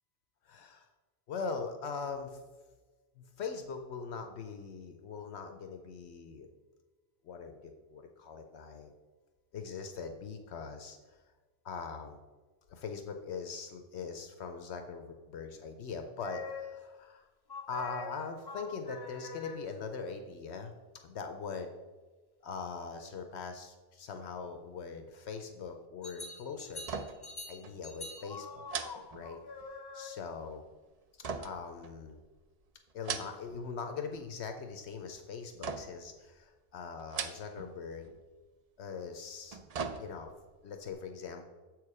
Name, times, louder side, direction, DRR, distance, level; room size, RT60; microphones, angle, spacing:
voice 1, 0.4-0.9 1.3-2.4 3.2-6.5 7.2-8.9 9.5-11.0 11.6-12.2 12.7-17.3 17.7-20.7 21.0-21.7 22.4-26.9 27.5-28.6 29.1-29.4 29.9-30.6 31.2-32.2 32.9-38.1 38.8-39.6 40.0-40.3 40.6-41.5, left 5 dB, 70° left, 6 dB, 0.9 m, -41 dB
sound 1, 16.2-17.0 17.5-19.9 26.0-30.4, left 4 dB, 30° left, 0.5 m, -45 dB
sound 2, 26.8-27.4 27.6-27.8 28.7-29.8 31.2-32.3 32.9-33.7 34.0-34.5 35.6-36.1 37.0-37.8 38.0-38.2 39.3-40.4 40.9-41.0, right 5 dB, 50° right, 0.4 m, -40 dB
7.3 x 4.8 x 4.8 m, 1.3 s
omnidirectional pair, 1.2 m